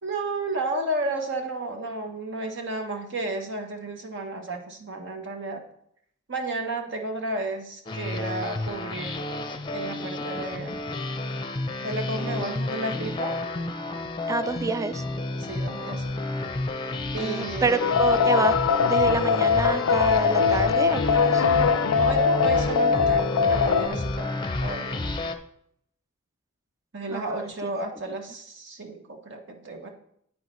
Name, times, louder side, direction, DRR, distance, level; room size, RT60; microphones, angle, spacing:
voice 1, 0.0-5.6 6.3-9.5 9.7-10.7 11.8-13.4 15.4-16.0 17.1-17.8 22.0-25.0 26.9-29.9, right 2 dB, 55° right, 4 dB, 1.1 m, -32 dB
sound 1, 7.9-25.4, left 2 dB, 20° left, 0.6 m, -31 dB
voice 2, 14.3-15.0 17.2-18.5 18.8-21.5 27.1-27.8, right 3 dB, 15° right, 13 dB, 0.4 m, -28 dB
sound 2, 17.8-23.9, left 6 dB, 80° left, 0.5 m, -21 dB
9.5 x 9.3 x 3.1 m, 0.70 s
head